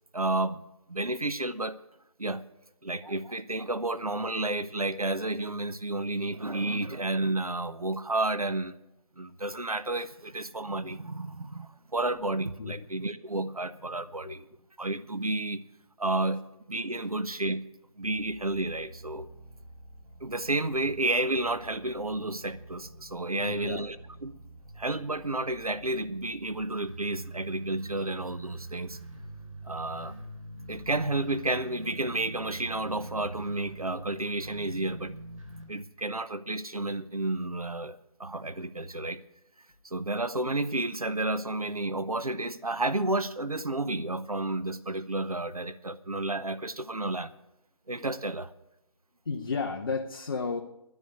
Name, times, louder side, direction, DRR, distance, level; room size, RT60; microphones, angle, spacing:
voice 1, 0.1-0.6 0.9-1.8 2.2-2.4 2.8-8.8 9.2-14.5 14.8-15.6 16.0-16.4 16.7-17.6 18.0-19.3 20.2-24.0 24.2-24.3 24.8-29.0 29.6-30.1 30.7-35.1 35.7-39.2 39.8-47.3 47.9-48.5, right 2 dB, 90° right, 14 dB, 0.8 m, -31 dB
sound 1, 18.0-35.6, right 2 dB, 65° right, 4.2 m, -45 dB
voice 2, 23.3-23.8 49.3-50.6, left 4 dB, 40° left, 3 dB, 0.9 m, -32 dB
12.0 x 9.7 x 8.2 m, 0.89 s
figure-of-eight pair, 155°, 18 cm